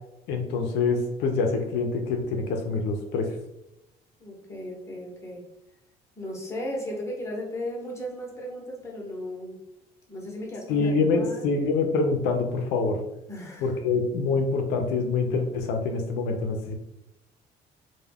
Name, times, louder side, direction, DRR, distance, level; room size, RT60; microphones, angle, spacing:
voice 1, 0.3-3.3 10.7-13.0 13.6-16.7, left 4 dB, 90° left, 4 dB, 0.4 m, -25 dB
voice 2, 4.2-5.5 6.2-9.6 10.1-11.4 13.3-13.8, left 1 dB, 15° left, -2 dB, 0.8 m, -36 dB
2.2 x 2.1 x 3.3 m, 0.87 s
cardioid pair, 110°, 17 cm